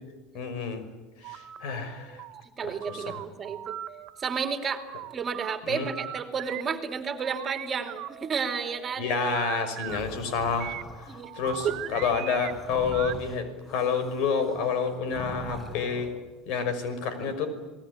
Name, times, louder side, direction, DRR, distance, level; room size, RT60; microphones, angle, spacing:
voice 1, 0.3-0.8 1.2-2.2 2.6-3.2 5.7-5.9 9.0-10.8 11.3-16.1 16.5-17.5, left 5 dB, 65° left, 10 dB, 5.8 m, -29 dB
sound 1, 1.2-1.6 2.0-4.5 4.9-6.6 7.0-10.0 10.6-13.3, right 13 dB, 55° right, 2.0 m, -39 dB
voice 2, 2.6-3.8 4.2-4.8 5.1-9.2 11.1-11.3 11.6-11.8, right 6 dB, 30° right, 6 dB, 2.9 m, -31 dB
sound 2, 9.9-16.2, left 1 dB, 20° left, 7.0 m, -43 dB
28.5 x 19.5 x 9.8 m, 1.2 s
supercardioid pair, 120°, 0 cm